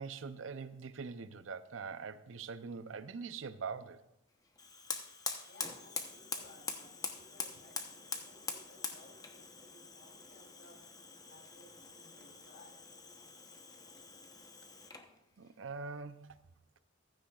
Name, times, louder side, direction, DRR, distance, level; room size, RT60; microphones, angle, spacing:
voice 1, 0.0-4.0 15.4-16.4, right 5 dB, 80° right, 0.6 m, -43 dB
Fire, 4.6-15.1, left 4 dB, 20° left, 0.9 m, -44 dB
voice 2, 5.5-10.8 11.3-12.8, left 1 dB, 55° left, 3.5 m, -60 dB
15.0 x 13.0 x 2.4 m
head